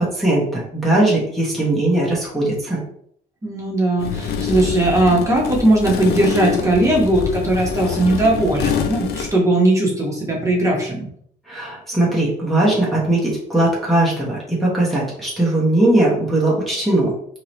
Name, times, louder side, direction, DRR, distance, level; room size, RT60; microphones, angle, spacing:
voice 1, 0.0-2.8 11.5-17.1, right 1 dB, ahead, -7 dB, 1.1 m, -19 dB
voice 2, 3.4-11.1, right 1 dB, 20° right, -2 dB, 1.2 m, -18 dB
sound 1, 4.0-9.3, left 6 dB, 70° left, 0.6 m, -25 dB
3.7 x 3.0 x 3.1 m, 0.67 s
cardioid pair, 110°, 17 cm